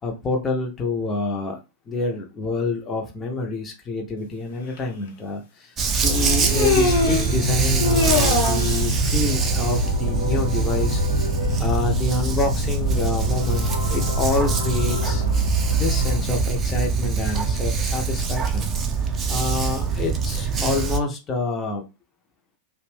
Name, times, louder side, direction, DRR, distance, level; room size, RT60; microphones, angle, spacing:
voice 1, 0.0-1.6 1.9-11.0 11.6-15.2 15.7-18.7 19.3-21.8, left 3 dB, 25° left, 0.6 m, -27 dB
Human voice, 4.8-4.9 6.1-7.3 7.8-8.8, left 3 dB, 50° left, 0.8 m, -22 dB
Dog, 5.8-21.0, right 5 dB, 25° right, 0.4 m, -24 dB
sound 1, 6.0-16.2, left 2 dB, 85° left, 0.9 m, -28 dB
2.5 x 2.1 x 3.2 m
figure-of-eight pair, 90°, 0 cm